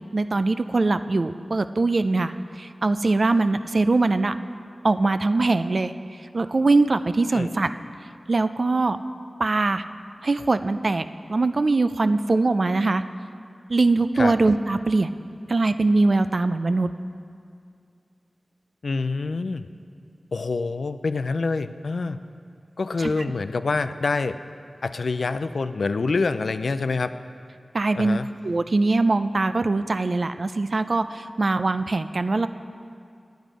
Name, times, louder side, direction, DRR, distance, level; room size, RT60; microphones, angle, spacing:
voice 1, 0.1-4.3 4.8-5.9 6.3-7.7 8.3-9.0 9.4-9.8 10.2-11.0 11.3-13.0 13.7-15.1 15.5-16.9 23.0-23.1 27.7-28.2 28.4-32.5, right 3 dB, 55° right, 11 dB, 0.3 m, -22 dB
voice 2, 18.8-19.7 20.3-22.2 22.8-24.4 24.8-27.1 27.9-28.3, left 3 dB, 80° left, 11 dB, 0.3 m, -26 dB
9.5 x 9.2 x 5.0 m, 2.4 s
wide cardioid pair, 65°, 0 cm